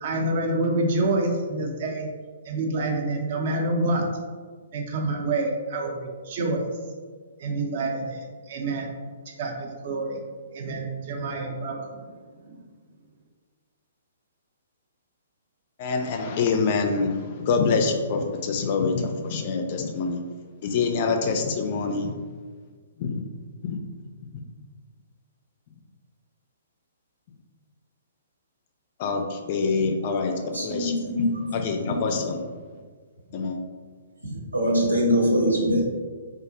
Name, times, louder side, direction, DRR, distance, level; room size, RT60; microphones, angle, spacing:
voice 1, 0.0-2.1 2.4-4.1 4.7-6.7 7.4-8.9 9.3-10.2 10.5-12.2 12.4-12.6, right 2 dB, 45° right, 1 dB, 0.5 m, -27 dB
voice 2, 15.8-20.2 20.6-22.1 23.0-23.2 23.6-23.8 29.0-31.3 31.5-32.4 33.3-33.6, left 4 dB, 40° left, 4 dB, 0.3 m, -26 dB
voice 3, 30.4-31.6 31.8-32.0 34.2-35.8, equal, 75° right, -3 dB, 0.8 m, -23 dB
3.6 x 2.0 x 2.7 m, 1.5 s
figure-of-eight pair, 120°, 0 cm